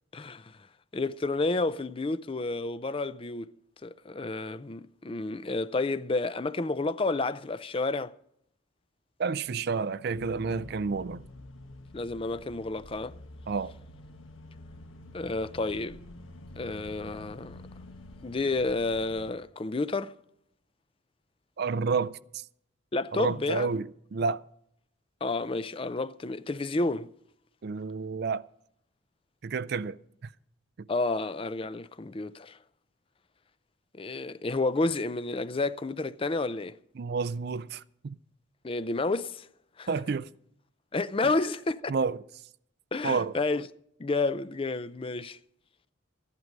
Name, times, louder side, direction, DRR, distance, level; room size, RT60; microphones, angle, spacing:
voice 1, 0.1-0.6 0.9-3.5 3.8-8.1 11.9-13.1 15.1-16.0 16.6-17.6 18.2-20.1 22.9-23.7 25.2-27.1 30.9-32.6 33.9-36.8 38.6-39.5 39.8-39.9 40.9-41.9 42.9-43.7 44.0-45.4, left 3 dB, 25° left, 0.4 m, -30 dB
voice 2, 9.2-11.2 13.5-13.7 21.6-22.4 23.1-24.4 27.6-28.4 29.4-30.3 30.8-30.9 37.0-38.1 39.9-40.3 41.9-42.2 43.0-43.3, right 5 dB, 50° right, 0.4 m, -30 dB
sound 1, 10.1-19.3, left 2 dB, 80° left, 1.3 m, -48 dB
14.5 x 11.0 x 5.2 m
head